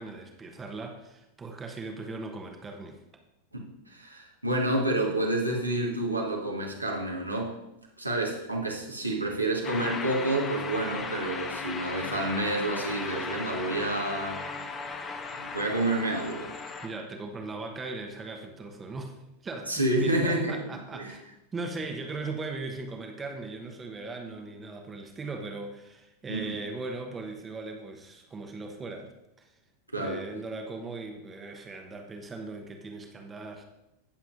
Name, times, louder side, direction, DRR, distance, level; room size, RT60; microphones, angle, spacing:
voice 1, 0.0-3.0 16.8-21.3 21.5-29.1 29.4-29.5 30.0-33.6, right 3 dB, 15° right, 3 dB, 1.1 m, -39 dB
voice 2, 3.5-7.5 8.0-14.4 15.4-16.5 19.7-20.6 21.0-21.1 26.3-26.5 29.9-30.2, right 1 dB, 85° right, -1 dB, 1.5 m, -29 dB
sound 1, 9.6-16.9, left 4 dB, 25° left, 1.0 m, -36 dB
17.0 x 7.1 x 2.6 m, 0.90 s
figure-of-eight pair, 90°, 0 cm